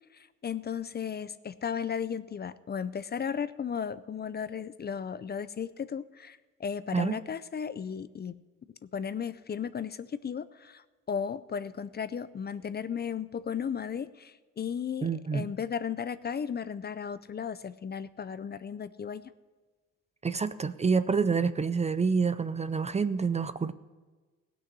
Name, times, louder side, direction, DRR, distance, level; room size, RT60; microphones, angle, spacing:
voice 1, 0.1-8.4 8.9-19.2, left 7 dB, 35° left, 15 dB, 0.5 m, -35 dB
voice 2, 15.0-15.5 20.2-23.7, right 5 dB, 20° right, 14 dB, 0.5 m, -27 dB
17.0 x 6.2 x 8.0 m, 1.3 s
cardioid pair, 90°, 30 cm